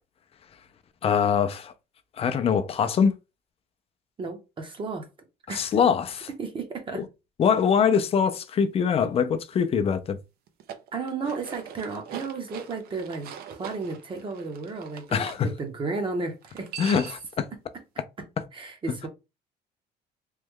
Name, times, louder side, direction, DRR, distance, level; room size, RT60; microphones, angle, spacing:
voice 1, 1.0-1.7 2.2-3.1 5.6-6.3 6.9-7.0 7.4-10.2 15.1-15.5 16.8-17.5, left 7 dB, 35° left, 0.4 m, -23 dB
voice 2, 4.2-5.1 5.5-5.8 6.4-7.0 10.9-16.7 18.2-18.3 18.5-19.1, right 4 dB, 30° right, 0.8 m, -33 dB
sound 1, 10.5-15.4 16.4-17.3, right 8 dB, 65° right, 0.6 m, -42 dB
3.1 x 2.2 x 3.5 m
cardioid pair, 140°, 17 cm